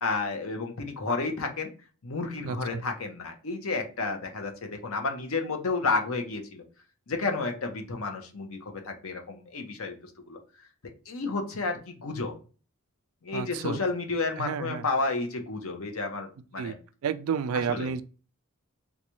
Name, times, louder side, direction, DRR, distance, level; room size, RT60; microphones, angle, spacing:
voice 1, 0.0-1.7 2.0-6.6 7.1-10.4 11.1-12.3 13.2-16.8 17.5-17.9, left 3 dB, 70° left, 0.8 m, -31 dB
voice 2, 2.4-2.8 13.3-13.8 14.4-14.8 16.6-16.7 17.0-18.0, right 7 dB, 70° right, 0.3 m, -31 dB
3.9 x 2.2 x 3.0 m
head